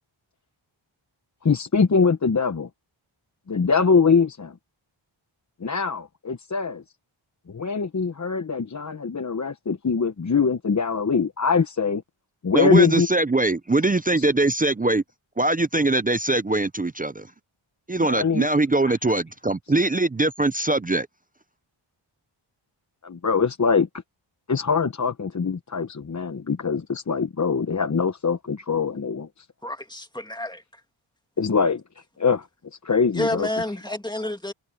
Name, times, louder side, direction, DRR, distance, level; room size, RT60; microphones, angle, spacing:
voice 1, 1.4-2.7 3.5-4.5 5.6-6.8 7.5-12.0 12.4-13.1 14.2-14.3 18.0-18.5 18.8-18.9 23.0-23.9 24.5-29.5 31.4-31.8 32.2-32.5 32.8-33.5, left 5 dB, 35° left, 0.9 m, -23 dB
voice 2, 12.5-15.0 15.4-17.3 17.9-21.1, right 2 dB, 20° right, 0.5 m, -22 dB
voice 3, 29.6-30.6 33.1-34.5, left 1 dB, 10° left, 2.2 m, -29 dB
wide cardioid pair, 90°, 49 cm